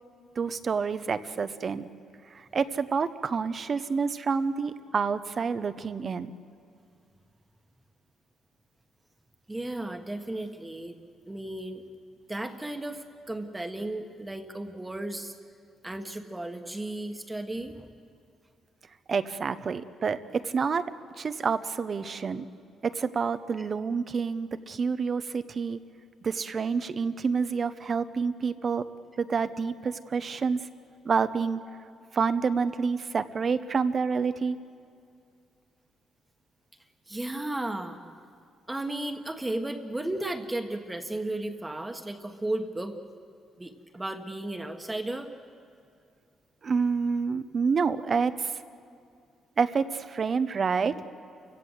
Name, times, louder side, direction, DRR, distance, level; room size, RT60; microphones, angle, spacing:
voice 1, 0.4-1.9 2.3-6.3 19.1-20.8 21.2-22.5 22.8-25.8 26.2-28.8 29.2-30.6 31.0-31.6 32.1-34.6 46.6-48.6 49.6-51.0, right 5 dB, 45° right, 12 dB, 0.9 m, -28 dB
voice 2, 9.5-11.0 11.3-11.8 12.3-15.3 15.8-17.8 23.6-23.7 37.1-38.0 38.7-42.9 43.6-45.3, right 1 dB, 15° right, 5 dB, 1.5 m, -34 dB
28.5 x 16.5 x 8.1 m, 2.3 s
cardioid pair, 90°, 0 cm